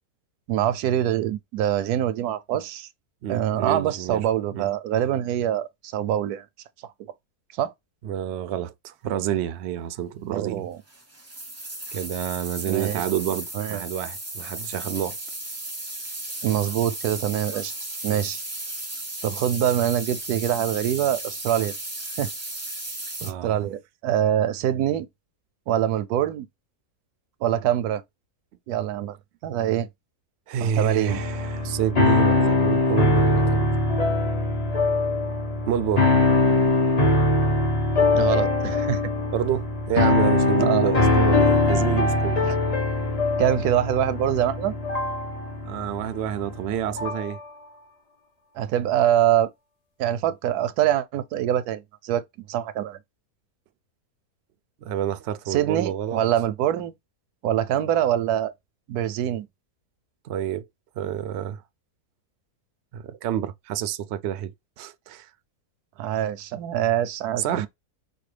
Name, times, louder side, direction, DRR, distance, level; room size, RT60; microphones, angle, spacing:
voice 1, 0.5-2.9 3.3-6.5 6.8-6.9 7.5-7.7 10.3-10.8 12.7-13.0 13.5-13.8 16.4-17.7 18.0-18.4 19.2-21.7 22.2-22.3 23.2-25.1 25.7-26.5 27.4-28.0 28.7-29.2 29.4-29.9 30.6-31.2 38.1-39.0 40.6-40.9 42.4-42.6 43.4-44.7 48.6-49.5 50.0-53.0 55.5-56.9 57.4-58.5 58.9-59.5 66.0-67.7, right 11 dB, 85° right, 1.1 m, -24 dB
voice 2, 3.2-4.2 4.5-4.7 8.0-10.6 11.9-15.2 18.1-18.2 23.2-23.6 30.5-33.8 35.7-36.1 39.3-42.4 45.6-47.4 54.8-56.2 60.2-60.7 61.0-61.6 62.9-64.5 64.8-65.3 67.4-67.7, right 10 dB, 70° right, 0.6 m, -28 dB
sound 1, 10.9-23.3, right 2 dB, 15° right, 0.6 m, -35 dB
sound 2, 31.1-47.3, left 2 dB, 30° left, 0.8 m, -22 dB
5.2 x 2.3 x 3.2 m
omnidirectional pair, 1.6 m